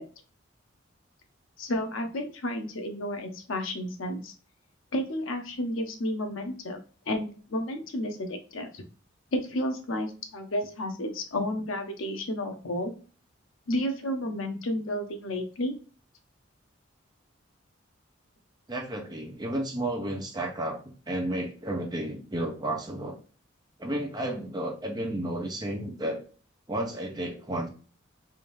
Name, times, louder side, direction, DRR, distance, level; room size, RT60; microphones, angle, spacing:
voice 1, 1.6-4.3 4.9-8.8 9.3-12.9 13.7-15.8, left 1 dB, 80° left, 5 dB, 0.7 m, -31 dB
voice 2, 18.7-20.8 21.1-23.2 23.8-26.2 26.7-27.7, right 1 dB, 20° right, 2 dB, 0.6 m, -32 dB
3.5 x 2.6 x 3.0 m, 0.38 s
head